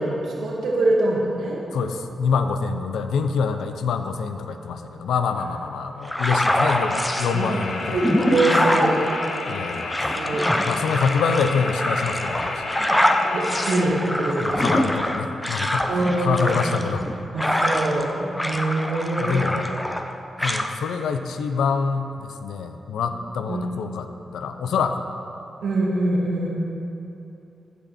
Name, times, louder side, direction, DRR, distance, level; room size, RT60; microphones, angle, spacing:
voice 1, 0.0-1.6 7.3-7.5 7.8-9.0 10.1-10.5 12.8-12.9 13.3-14.6 15.9-16.5 17.3-19.5 23.5-23.6 25.6-26.5, right 2 dB, 80° right, -4 dB, 1.9 m, -24 dB
voice 2, 1.7-8.0 9.4-10.4 10.7-12.7 14.4-17.1 19.2-19.7 20.4-25.1, left 5 dB, 85° left, 8 dB, 0.5 m, -26 dB
sound 1, 6.0-7.3 7.8-18.1 18.3-20.1 20.4-20.7, left 1 dB, 10° left, 0.8 m, -24 dB
sound 2, 6.4-13.9, left 3 dB, 65° left, 0.9 m, -31 dB
14.5 x 5.5 x 4.3 m, 2.9 s
supercardioid pair, 50°, 0 cm